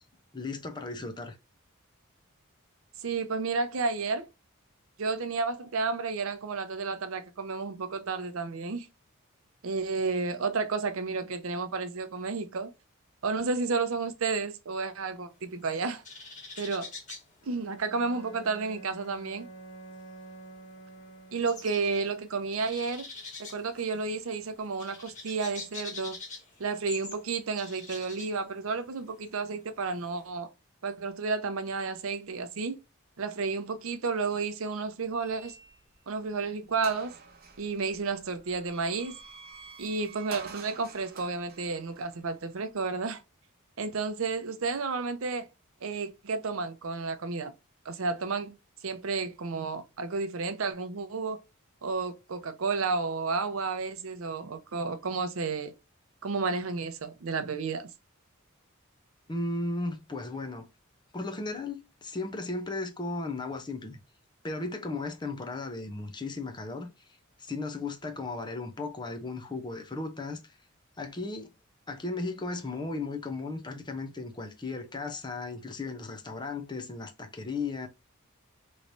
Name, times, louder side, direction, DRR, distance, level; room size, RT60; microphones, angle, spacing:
voice 1, 0.3-1.4 59.3-60.7 61.1-64.0 64.4-66.9 67.4-70.5 71.0-71.5 71.9-77.9, left 3 dB, 20° left, 0.6 m, -35 dB
voice 2, 3.0-4.3 5.0-8.9 9.6-12.7 13.2-16.0 16.6-16.9 17.5-19.5 21.3-23.1 23.4-26.2 26.6-30.5 30.8-32.8 33.2-35.5 36.1-37.1 37.6-39.2 39.8-43.2 43.8-45.5 45.8-47.5 47.9-48.5 48.8-51.4 51.8-55.7 56.2-57.9, right 4 dB, 70° right, 0.6 m, -31 dB
sound 1, 15.3-18.4 18.7-30.2, left 4 dB, 35° left, 1.6 m, -46 dB
Bowed string instrument, 17.4-21.8, right 2 dB, 75° left, 1.7 m, -48 dB
sound 2, 35.1-36.0 36.4-36.5 36.8-42.9, right 4 dB, 45° right, 0.8 m, -48 dB
3.1 x 3.1 x 2.6 m
head